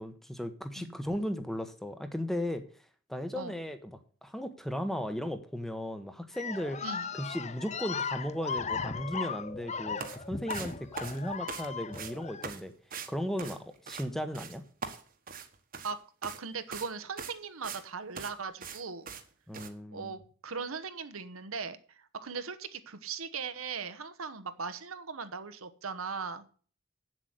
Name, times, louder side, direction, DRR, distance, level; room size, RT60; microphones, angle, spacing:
voice 1, 0.0-2.6 3.1-6.8 7.1-12.7 13.1-14.6 19.5-20.1, equal, ahead, 9 dB, 1.0 m, -36 dB
sound 1, 6.3-12.5, left 5 dB, 35° left, 0.7 m, -37 dB
sound 2, 10.0-10.2 10.5-11.7 11.9-12.1 12.4-12.6 12.9-13.1 13.4-14.1 14.3-14.6 14.8-15.9 16.2-16.4 16.7-16.9 17.2-17.8 18.2-18.3 18.6-18.8 19.1-19.2 19.5-19.7, right 6 dB, 45° right, 1.3 m, -41 dB
voice 2, 16.2-19.1 19.9-26.5, right 5 dB, 85° right, 11 dB, 1.1 m, -39 dB
8.1 x 7.7 x 7.9 m, 0.42 s
head